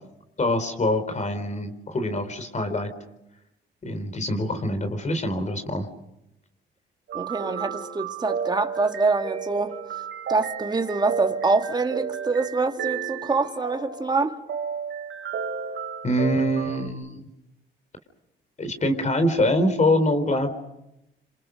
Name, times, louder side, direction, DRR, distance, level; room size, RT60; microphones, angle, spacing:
voice 1, 0.4-2.9 3.8-5.9 16.0-17.3 18.6-20.5, left 1 dB, 35° left, 4.2 m, -24 dB
voice 2, 7.1-9.8 10.3-14.4, right 3 dB, 20° right, 2.1 m, -25 dB
sound 1, 7.1-16.9, right 7 dB, 70° right, 3.5 m, -32 dB
27.0 x 26.5 x 6.5 m
cardioid pair, 90°, 20 cm